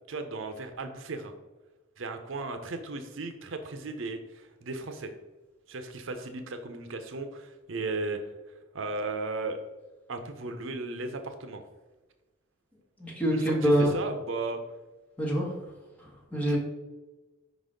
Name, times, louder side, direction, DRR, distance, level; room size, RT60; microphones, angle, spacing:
voice 1, 0.1-1.3 2.0-5.1 5.7-8.2 8.7-9.6 10.1-11.6 13.3-14.6 16.5-16.6, right 3 dB, 70° right, 7 dB, 0.6 m, -35 dB
voice 2, 13.0-13.9 15.2-15.5 16.0-16.6, equal, 10° left, -3 dB, 1.5 m, -25 dB
5.2 x 4.0 x 5.1 m, 1.2 s
head